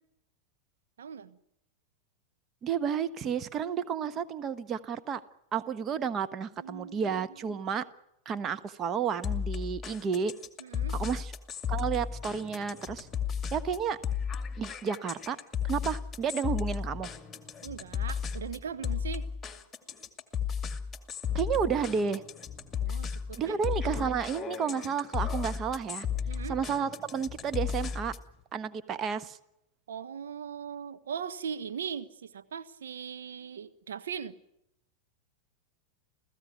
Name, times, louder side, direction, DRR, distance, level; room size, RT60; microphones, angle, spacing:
voice 1, 1.0-1.4 6.6-7.2 7.5-7.6 10.6-11.0 17.6-19.3 22.8-23.6 26.3-26.6 29.9-34.4, right 7 dB, 65° right, 9 dB, 1.2 m, -39 dB
voice 2, 2.6-5.2 5.5-7.9 8.2-10.3 10.9-11.3 11.7-13.1 13.5-14.0 14.6-15.4 15.6-17.1 21.3-22.2 23.4-26.1 26.5-28.1 28.5-29.4, right 7 dB, 30° right, 11 dB, 1.2 m, -31 dB
sound 1, 9.2-28.3, left 7 dB, 15° left, 2.4 m, -34 dB
29.0 x 16.0 x 9.4 m, 0.82 s
figure-of-eight pair, 90°, 0 cm